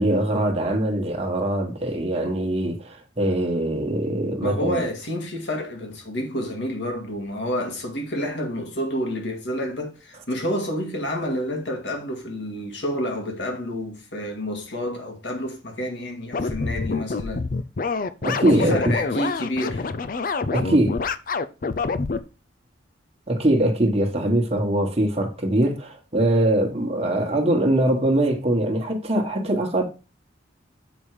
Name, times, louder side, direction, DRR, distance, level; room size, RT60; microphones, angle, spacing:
voice 1, 0.0-4.8 18.2-18.9 20.5-21.0 23.3-29.8, right 1 dB, 30° right, 1.3 m, -22 dB
voice 2, 4.4-17.4 18.5-19.9, equal, 65° left, 2.1 m, -29 dB
sound 1, 16.3-22.2, left 4 dB, 45° left, 0.5 m, -26 dB
7.1 x 5.3 x 4.8 m
head